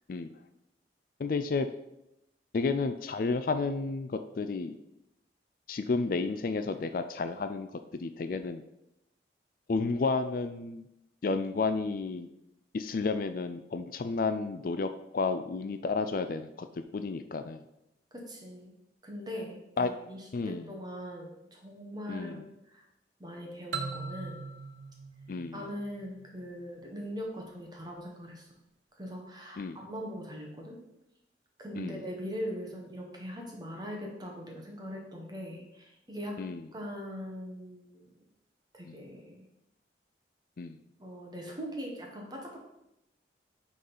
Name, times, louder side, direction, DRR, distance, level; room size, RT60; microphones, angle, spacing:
voice 1, 1.2-1.7 2.5-4.7 5.7-7.7 7.9-8.6 9.7-10.8 11.2-12.3 12.7-16.7 16.9-17.6 19.8-19.9 20.3-20.7 22.1-22.4 25.3-25.7 29.6-29.8 31.8-32.0 36.4-36.6 38.9-39.0 40.6-40.8, left 4 dB, 50° left, 9 dB, 0.4 m, -31 dB
voice 2, 18.1-18.7 19.0-22.4 22.7-22.8 23.2-24.4 25.5-28.5 29.0-30.8 31.6-36.4 36.7-38.1 38.7-39.5 41.0-42.6, equal, 20° right, 0 dB, 1.5 m, -41 dB
sound 1, 23.7-26.4, right 4 dB, 90° right, 0.9 m, -40 dB
8.5 x 3.9 x 5.5 m, 0.88 s
head